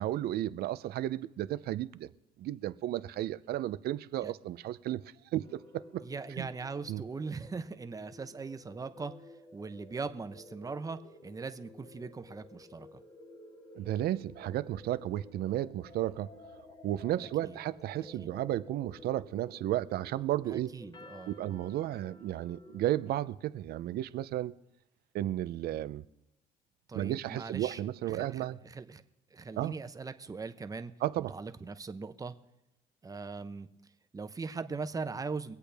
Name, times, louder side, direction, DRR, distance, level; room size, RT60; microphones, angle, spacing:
voice 1, 0.0-2.1 2.4-5.0 5.3-6.0 6.4-6.5 6.9-7.0 13.8-16.3 16.8-20.7 21.3-24.5 25.1-26.0 26.9-28.6 29.6-29.7 31.0-31.3, right 13 dB, 70° right, 0.6 m, -33 dB
sound 1, 5.4-23.1, left 2 dB, 25° left, 1.3 m, -53 dB
voice 2, 6.0-9.1 9.5-13.0 17.4-17.6 18.2-18.3 20.5-21.3 26.9-29.0 29.3-32.4 33.0-33.7 34.1-35.5, right 4 dB, 20° right, 0.8 m, -40 dB
23.5 x 8.3 x 3.5 m
cardioid pair, 110°, 17 cm